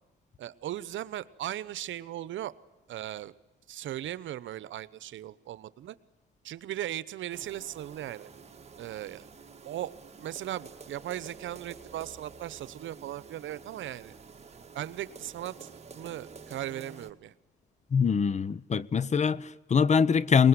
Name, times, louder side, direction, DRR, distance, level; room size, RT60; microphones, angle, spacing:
voice 1, 0.4-2.5 2.9-3.3 3.7-6.0 6.4-8.3 8.8-9.3 9.6-9.9 10.2-14.1 14.7-17.3, right 12 dB, 75° right, 1.0 m, -38 dB
sound 1, 7.3-17.1, right 5 dB, 30° right, 2.0 m, -49 dB
voice 2, 17.9-20.5, left 6 dB, 35° left, 0.8 m, -23 dB
22.0 x 20.0 x 9.7 m
cardioid pair, 90°, 20 cm